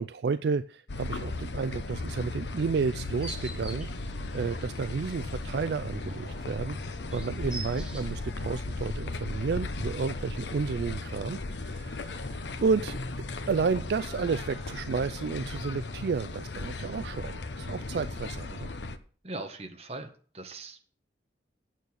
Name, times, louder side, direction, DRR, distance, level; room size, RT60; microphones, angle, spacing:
voice 1, 0.0-18.7, right 5 dB, 65° right, 13 dB, 0.4 m, -32 dB
sound 1, 0.9-19.0, left 2 dB, 75° left, 0.8 m, -36 dB
sound 2, 3.0-8.6, right 1 dB, 5° right, 2.3 m, -46 dB
voice 2, 19.2-20.8, right 2 dB, 35° right, 5 dB, 1.4 m, -40 dB
9.1 x 7.0 x 6.4 m, 0.42 s
head